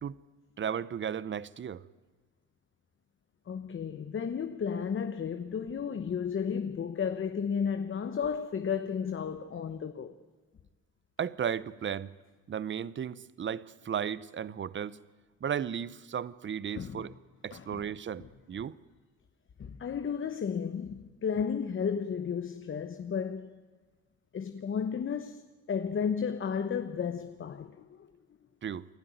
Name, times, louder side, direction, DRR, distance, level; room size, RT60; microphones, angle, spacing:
voice 1, 0.6-1.8 11.2-12.1 12.5-15.0 15.4-17.1 17.4-18.8 28.6-28.9, right 8 dB, 40° right, 0.8 m, -35 dB
voice 2, 3.5-10.2 16.8-17.0 17.5-17.8 19.6-23.6 24.3-28.1, left 7 dB, 40° left, 1.0 m, -33 dB
28.5 x 12.0 x 9.3 m
cardioid pair, 90°, 30 cm